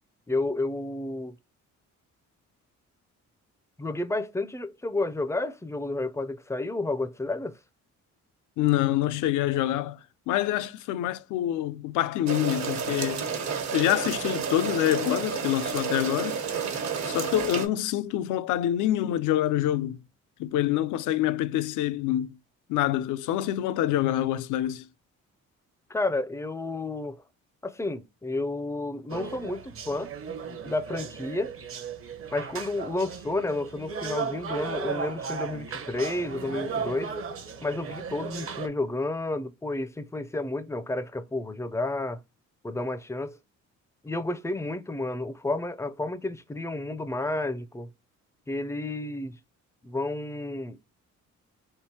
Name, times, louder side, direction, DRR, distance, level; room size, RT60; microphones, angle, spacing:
voice 1, 0.3-1.3 3.8-7.6 25.9-27.2 27.6-30.1 30.6-31.5 32.3-37.1 37.6-42.2 42.6-43.4 44.0-47.9 48.5-49.3 49.8-50.8, left 2 dB, 10° left, 0.4 m, -31 dB
voice 2, 8.6-10.0 10.3-13.3 13.7-16.4 17.0-20.0 20.4-22.3 22.7-24.9, left 13 dB, 85° left, 0.5 m, -26 dB
sound 1, 12.3-17.7, right 6 dB, 65° right, 1.1 m, -31 dB
sound 2, 29.1-38.7, right 5 dB, 45° right, 0.8 m, -36 dB
3.6 x 2.6 x 2.7 m
cardioid pair, 90°, 30 cm